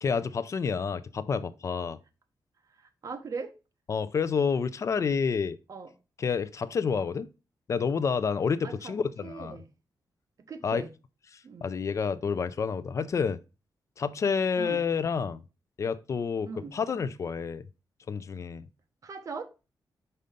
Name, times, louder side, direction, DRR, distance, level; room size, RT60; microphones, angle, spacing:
voice 1, 0.0-2.0 3.9-5.6 6.2-7.3 7.7-9.6 10.6-10.8 11.6-13.4 14.0-15.4 15.8-17.6 18.1-18.7, left 6 dB, 40° left, 0.4 m, -29 dB
voice 2, 2.8-3.5 5.7-5.9 8.6-8.9 9.2-9.7 10.5-10.9 11.4-11.7 14.6-14.8 16.5-16.8 19.0-19.5, right 4 dB, 45° right, 1.0 m, -39 dB
5.4 x 5.3 x 5.0 m
wide cardioid pair, 165°, 8 cm